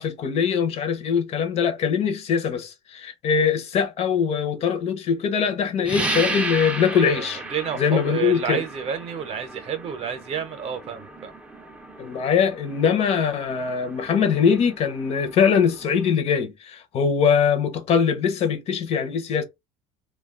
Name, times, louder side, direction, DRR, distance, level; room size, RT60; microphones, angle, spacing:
voice 1, 0.0-7.4 7.8-8.6 12.0-19.4, left 7 dB, 45° left, 0.5 m, -22 dB
sound 1, 5.8-16.1, right 2 dB, 10° right, 0.4 m, -34 dB
voice 2, 6.9-11.3, right 7 dB, 40° right, 0.7 m, -30 dB
2.3 x 2.2 x 3.5 m
cardioid pair, 150°, 15 cm